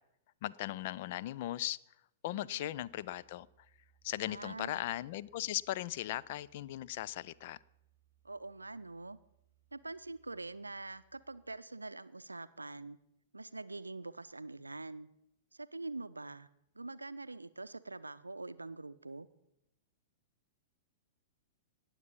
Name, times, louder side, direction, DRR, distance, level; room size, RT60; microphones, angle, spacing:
voice 1, 0.4-1.8 2.2-3.5 4.0-7.6, left 14 dB, 45° left, 0.4 m, -38 dB
voice 2, 2.3-2.7 4.1-4.8 8.2-9.2 9.7-13.0 13.3-15.1 15.5-16.5 16.7-19.3, right 3 dB, 80° right, 0.5 m, -45 dB
sound 1, 2.6-11.5, right 10 dB, 80° left, 5.0 m, -72 dB
19.0 x 7.3 x 5.5 m
figure-of-eight pair, 105°, 0 cm